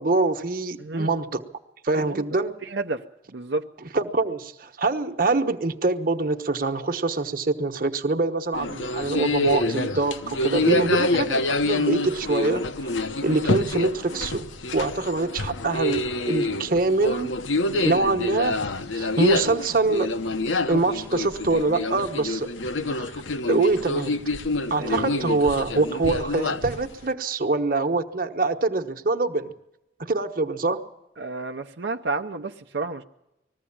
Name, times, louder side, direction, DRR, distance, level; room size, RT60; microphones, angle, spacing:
voice 1, 0.0-1.4 1.8-2.6 3.9-12.9 13.2-14.5 14.7-17.3 17.8-18.6 18.9-20.1 20.7-22.5 22.9-23.1 23.5-24.1 24.7-29.5 30.0-30.8, right 3 dB, 45° right, 7 dB, 1.2 m, -24 dB
voice 2, 0.8-1.1 2.0-2.2 2.6-3.0 3.3-3.7 16.7-16.8 17.7-17.9 22.8-23.0 24.8-25.2 31.2-33.0, right 3 dB, 70° right, 3 dB, 0.8 m, -31 dB
sound 1, 8.5-27.1, left 2 dB, 80° left, 0.9 m, -27 dB
20.5 x 15.0 x 8.7 m, 0.91 s
head